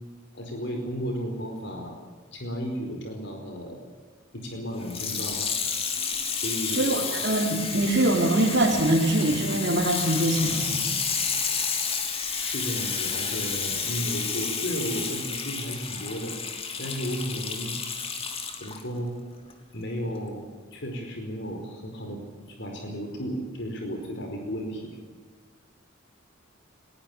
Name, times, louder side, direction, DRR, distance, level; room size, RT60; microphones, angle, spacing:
voice 1, 0.3-1.9 2.3-3.8 4.3-5.4 6.3-7.0 12.3-16.3 16.8-18.0 18.6-19.2 19.7-22.2 22.5-24.9, equal, 60° left, 3 dB, 4.7 m, -34 dB
Water tap faucet / Sink (filling or washing), 4.8-18.8 19.5-19.6, left 5 dB, 30° left, 3.3 m, -30 dB
voice 2, 6.7-10.8, right 1 dB, 55° right, -3 dB, 3.3 m, -23 dB
21.5 x 20.0 x 8.6 m, 1.4 s
head